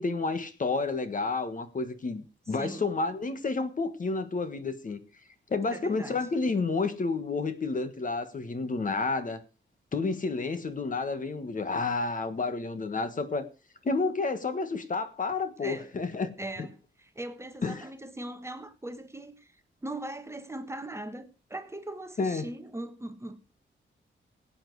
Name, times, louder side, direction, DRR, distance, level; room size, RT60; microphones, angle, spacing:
voice 1, 0.0-5.0 5.5-9.4 9.9-13.4 13.8-16.3 16.6-16.7 17.6-17.8 22.2-22.5, left 3 dB, 40° left, 1.5 m, -30 dB
voice 2, 2.5-2.9 5.7-6.3 15.6-15.9 16.4-23.5, right 1 dB, 15° right, 1.3 m, -40 dB
17.5 x 8.8 x 4.8 m
wide cardioid pair, 120°, 20 cm